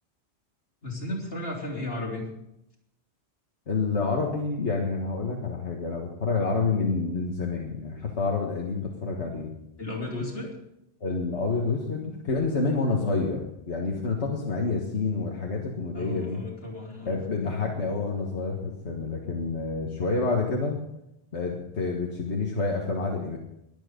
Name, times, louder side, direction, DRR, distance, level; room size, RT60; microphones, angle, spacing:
voice 1, 0.8-2.3 9.8-10.5 15.9-17.2, left 2 dB, 65° left, -2 dB, 4.1 m, -34 dB
voice 2, 3.7-9.5 11.0-16.4 17.0-20.8 21.3-23.4, left 3 dB, 90° left, 0 dB, 1.9 m, -28 dB
22.0 x 9.0 x 5.2 m, 0.83 s
omnidirectional pair, 1.1 m